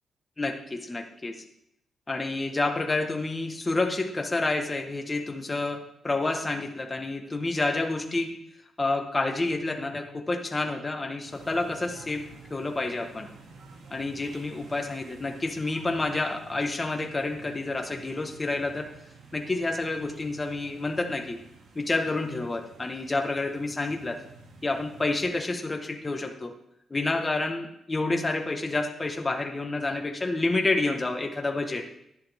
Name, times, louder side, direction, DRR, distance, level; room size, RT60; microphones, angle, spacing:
voice 1, 0.4-1.4 2.1-8.4 8.8-13.3 13.9-18.9 19.3-21.4 21.7-24.2 24.6-26.5 26.9-31.9, left 2 dB, 20° left, 4 dB, 1.3 m, -29 dB
sound 1, 11.2-25.2, right 4 dB, 85° right, 2.2 m, -51 dB
11.5 x 10.5 x 3.5 m, 0.79 s
cardioid pair, 115°, 0 cm